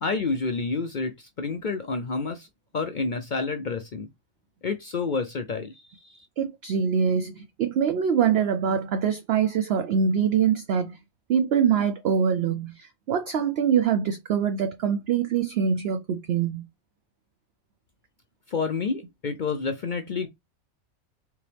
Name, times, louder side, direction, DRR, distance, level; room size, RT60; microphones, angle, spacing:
voice 1, 0.0-2.5 2.7-4.1 4.6-6.3 18.5-20.3, left 4 dB, 60° left, 0.5 m, -29 dB
voice 2, 6.4-11.0 11.3-16.6, right 7 dB, 60° right, 0.7 m, -24 dB
4.6 x 3.0 x 3.3 m
omnidirectional pair, 1.5 m